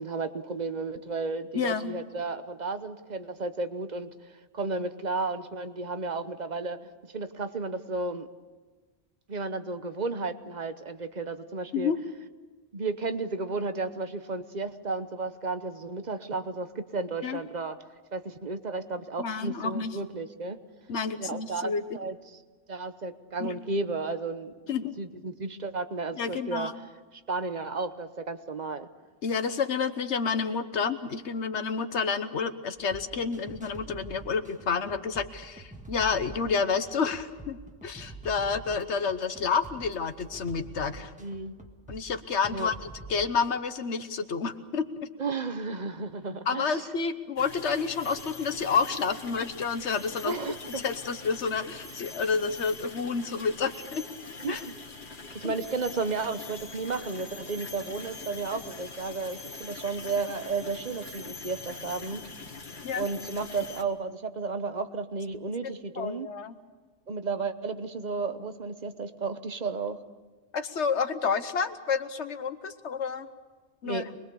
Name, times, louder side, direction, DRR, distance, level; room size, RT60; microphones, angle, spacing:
voice 1, 0.0-4.1 4.5-8.3 9.3-11.9 12.7-17.8 18.1-20.6 21.2-22.4 22.7-24.5 25.0-26.7 27.1-28.9 41.2-41.5 42.5-42.7 45.2-46.9 50.2-50.9 54.4-54.6 55.3-62.2 62.9-66.3 67.1-70.0 73.8-74.1, right 3 dB, 40° right, 10 dB, 1.0 m, -33 dB
voice 2, 1.5-2.0 11.7-12.0 17.2-17.4 19.2-20.0 20.9-22.0 23.4-23.5 24.7-25.0 26.2-26.7 29.2-41.1 41.9-42.7 43.1-45.1 46.5-50.3 50.8-54.0 54.5-54.6 55.4-55.5 62.8-63.1 65.6-66.6 70.5-73.3 73.8-74.1, left 5 dB, 75° left, 10 dB, 1.3 m, -29 dB
sound 1, 32.8-43.6, right 3 dB, 5° right, 1.6 m, -46 dB
sound 2, 47.4-63.8, left 4 dB, 45° left, 1.7 m, -43 dB
24.5 x 21.0 x 7.0 m, 1.4 s
omnidirectional pair, 1.2 m